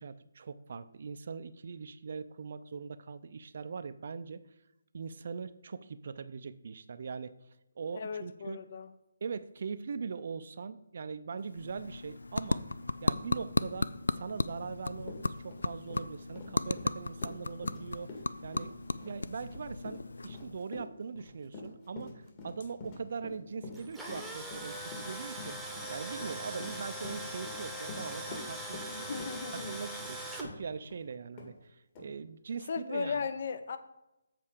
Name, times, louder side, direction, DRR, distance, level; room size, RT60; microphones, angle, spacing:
voice 1, 0.0-4.5 4.9-7.4 7.8-8.6 9.2-12.6 13.0-25.6 25.9-29.2 29.5-33.3, right 5 dB, 55° right, 13 dB, 0.5 m, -41 dB
voice 2, 7.9-8.9 28.9-29.7 32.7-33.8, left 5 dB, 50° left, 10 dB, 0.8 m, -36 dB
sound 1, 11.4-20.8, left 3 dB, 75° left, 0.4 m, -35 dB
Run, 14.6-14.7 15.0-31.0 31.4-31.5 31.9-32.1, left 3 dB, 30° left, 1.8 m, -47 dB
Tools, 23.7-30.5, right 1 dB, ahead, 1.0 m, -41 dB
7.5 x 4.5 x 6.6 m, 0.92 s
figure-of-eight pair, 150°, 0 cm